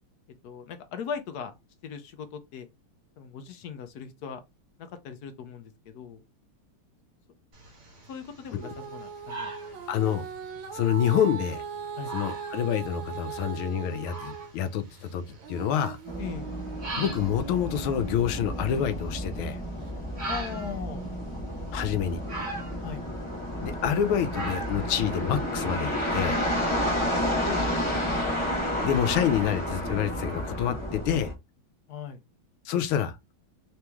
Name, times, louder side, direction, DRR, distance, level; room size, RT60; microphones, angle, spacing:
voice 1, 0.4-1.5 1.8-2.7 3.2-4.4 4.8-6.2 8.1-9.5 12.0-12.1 16.2-16.5 20.3-21.1 22.8-23.0 27.0-28.3 31.9-32.2, left 7 dB, 65° left, 1.0 m, -39 dB
sound 1, 7.5-26.2, right 2 dB, 40° right, 2.1 m, -43 dB
Female singing, 8.6-14.5 15.0-19.3 19.9-20.0, right 7 dB, 75° right, 1.5 m, -40 dB
voice 2, 9.9-10.2 10.7-11.6 12.1-15.2 15.5-16.0 17.0-19.6 21.7-22.2 23.6-26.4 28.8-31.3 32.7-33.2, left 9 dB, 85° left, 1.5 m, -27 dB
sound 2, 16.1-31.3, equal, 20° left, 0.8 m, -31 dB
3.9 x 3.0 x 3.4 m
omnidirectional pair, 2.3 m